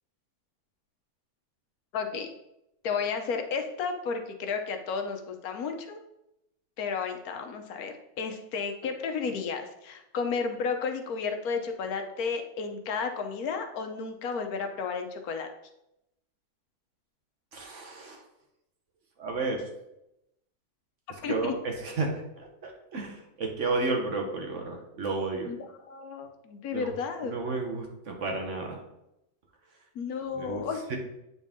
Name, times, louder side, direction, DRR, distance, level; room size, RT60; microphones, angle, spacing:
voice 1, 1.9-2.3 2.8-6.0 6.8-15.5 21.2-21.5 25.5-25.6 25.9-27.3 29.9-30.8, left 5 dB, 75° left, 5 dB, 1.2 m, -32 dB
voice 2, 17.5-18.2 19.2-19.6 21.3-25.5 26.7-26.9 27.2-28.8 30.4-30.6 30.9-31.0, right 3 dB, 55° right, 2 dB, 1.3 m, -32 dB
8.2 x 4.1 x 3.6 m, 0.85 s
omnidirectional pair, 1.6 m